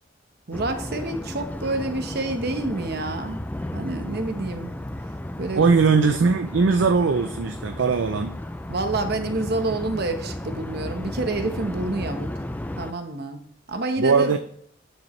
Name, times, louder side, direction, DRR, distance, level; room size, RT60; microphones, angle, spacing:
sound 1, 0.5-12.9, left 1 dB, 10° left, 0.3 m, -34 dB
voice 1, 0.5-3.4 3.7-4.7 5.4-5.6 8.7-12.3 12.8-13.4 13.7-14.4, right 2 dB, 55° right, 6 dB, 1.1 m, -28 dB
voice 2, 5.6-8.3 14.0-14.4, right 4 dB, 70° right, 8 dB, 0.5 m, -20 dB
9.0 x 7.3 x 3.2 m, 0.63 s
head